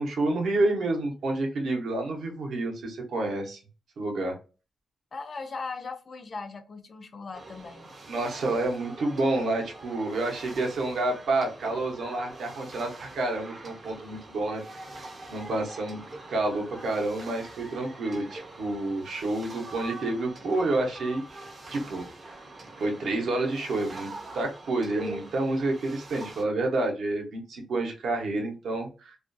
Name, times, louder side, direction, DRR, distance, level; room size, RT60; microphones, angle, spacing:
voice 1, 0.0-3.6 4.0-4.3 8.1-14.6 15.3-16.0 16.3-21.4 21.7-22.1 22.8-29.2, right 2 dB, 60° right, 0.7 m, -29 dB
voice 2, 5.1-7.9, left 4 dB, 35° left, 0.3 m, -38 dB
sound 1, 7.3-26.4, right 2 dB, 30° right, 0.5 m, -44 dB
2.4 x 2.2 x 2.5 m
wide cardioid pair, 180°, 0 cm